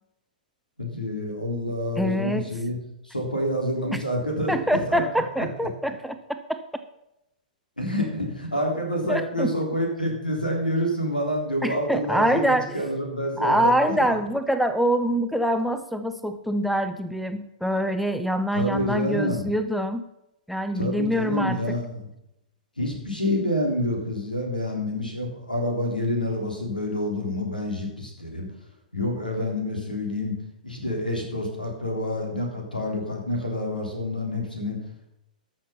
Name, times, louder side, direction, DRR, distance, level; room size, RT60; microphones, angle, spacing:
voice 1, 0.8-2.8 3.1-4.5 4.9-5.0 5.4-5.5 7.8-14.0 18.5-19.5 20.7-22.1 22.8-28.5 28.9-30.4 30.6-34.8, left 1 dB, 85° left, 1 dB, 3.4 m, -28 dB
voice 2, 2.0-2.5 3.9-4.0 4.5-6.6 9.1-9.5 11.6-12.8 13.4-20.1 20.5-21.6, equal, ahead, 7 dB, 0.6 m, -25 dB
13.5 x 6.5 x 5.6 m, 0.85 s
figure-of-eight pair, 110°, 5 cm